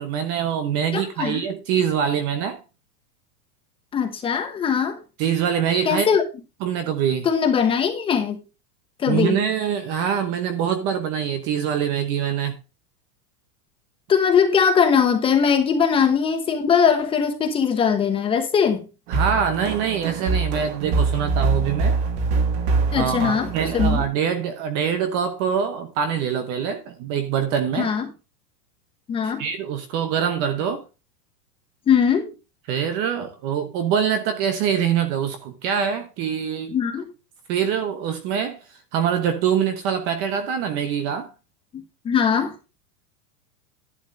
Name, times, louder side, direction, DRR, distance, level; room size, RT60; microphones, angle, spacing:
voice 1, 0.0-2.6 5.2-6.1 6.6-7.3 9.1-12.6 19.1-22.0 23.0-27.9 29.2-30.8 32.7-36.7 37.5-41.3, right 8 dB, 25° right, 0.9 m, -24 dB
voice 2, 0.9-1.4 3.9-5.0 5.8-6.2 7.2-8.4 9.0-9.4 14.1-18.9 22.9-24.0 27.8-28.0 29.1-29.4 31.9-32.3 36.7-37.1 41.7-42.5, left 7 dB, 10° left, 1.0 m, -20 dB
sound 1, 19.1-24.0, right 4 dB, 40° right, 2.3 m, -24 dB
11.5 x 11.0 x 2.6 m
supercardioid pair, 175°, 48 cm